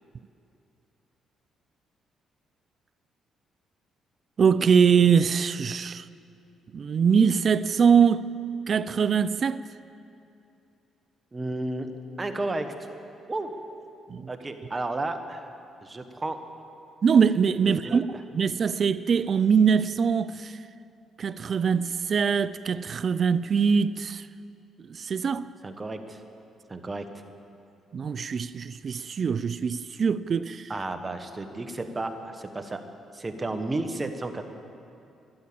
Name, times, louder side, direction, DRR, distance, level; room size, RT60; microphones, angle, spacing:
voice 1, 4.4-6.0 6.7-8.3 8.7-9.7 14.1-14.3 17.0-18.0 18.3-20.5 21.2-24.2 24.9-25.5 27.9-30.7, right 6 dB, 50° right, 0.4 m, -23 dB
voice 2, 11.3-11.9 12.2-12.7 13.3-13.5 14.3-15.5 15.8-16.4 17.5-18.0 25.6-26.2 26.7-27.0 30.7-32.8 33.1-34.4, right 2 dB, 25° right, 1.3 m, -32 dB
13.0 x 11.5 x 8.7 m
cardioid pair, 90°, 0 cm